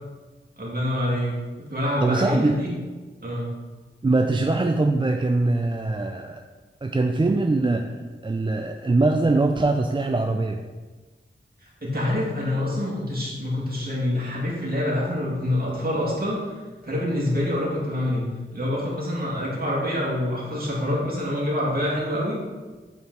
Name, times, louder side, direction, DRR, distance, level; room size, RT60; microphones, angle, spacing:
voice 1, 0.6-1.4 1.7-2.7 3.2-3.5 11.8-16.4 16.8-22.4, left 1 dB, 45° right, -4 dB, 2.3 m, -26 dB
voice 2, 2.0-2.6 4.0-6.4 6.8-7.9 8.2-10.6, right 2 dB, 25° right, 4 dB, 0.4 m, -22 dB
8.2 x 4.5 x 3.9 m, 1.3 s
wide cardioid pair, 85°, 20 cm